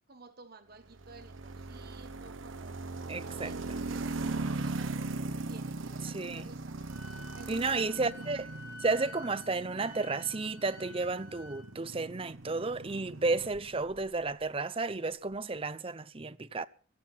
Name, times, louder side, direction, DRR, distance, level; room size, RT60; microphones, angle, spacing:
voice 1, 0.1-2.9 3.4-5.1 5.5-6.8 7.3-8.0, right 3 dB, 50° right, 1.3 m, -53 dB
sound 1, 0.9-14.1, right 3 dB, 75° right, 1.0 m, -39 dB
voice 2, 3.1-3.8 6.0-6.5 7.5-8.5 8.8-16.7, right 3 dB, 25° right, 0.7 m, -32 dB
Wind instrument woodwind instrument, 6.9-11.6, left 2 dB, 55° left, 4.3 m, -50 dB
16.5 x 13.5 x 5.7 m
head